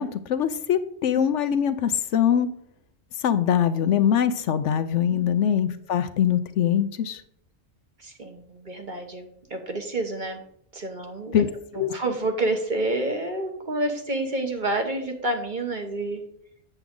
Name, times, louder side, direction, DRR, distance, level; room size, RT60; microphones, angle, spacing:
voice 1, 0.0-2.5 3.2-7.2 11.3-11.5 11.7-11.9, left 9 dB, 70° left, 11 dB, 0.9 m, -23 dB
voice 2, 8.0-10.4 10.7-11.4 11.7-16.2, right 2 dB, 40° right, 4 dB, 1.1 m, -29 dB
8.0 x 7.2 x 3.7 m, 0.69 s
omnidirectional pair, 1.3 m